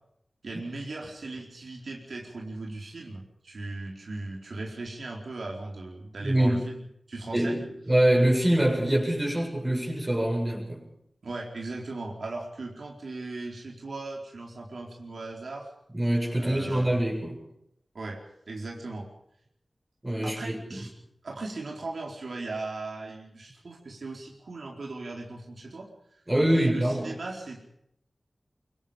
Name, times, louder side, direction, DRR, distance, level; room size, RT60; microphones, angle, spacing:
voice 1, 0.4-7.7 11.2-15.7 16.4-17.0 17.9-18.2 18.5-19.1 20.2-20.9 21.2-25.9 26.5-27.6, right 2 dB, 80° right, 0 dB, 4.5 m, -38 dB
voice 2, 6.2-6.6 7.3-10.8 15.9-17.4 20.0-20.8 26.3-27.1, right 1 dB, 20° right, -1 dB, 7.3 m, -25 dB
25.0 x 23.0 x 5.3 m, 0.76 s
wide cardioid pair, 80°, 0 cm